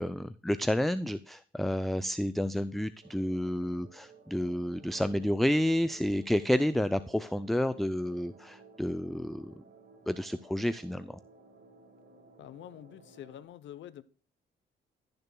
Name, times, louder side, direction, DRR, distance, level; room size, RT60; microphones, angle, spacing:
voice 1, 0.0-9.6 10.1-11.2, equal, ahead, 0.4 m, -30 dB
sound 1, 3.0-13.5, right 4 dB, 50° right, 1.8 m, -57 dB
voice 2, 12.4-14.0, left 11 dB, 70° left, 0.8 m, -47 dB
15.0 x 6.7 x 2.2 m
cardioid pair, 90°, 20 cm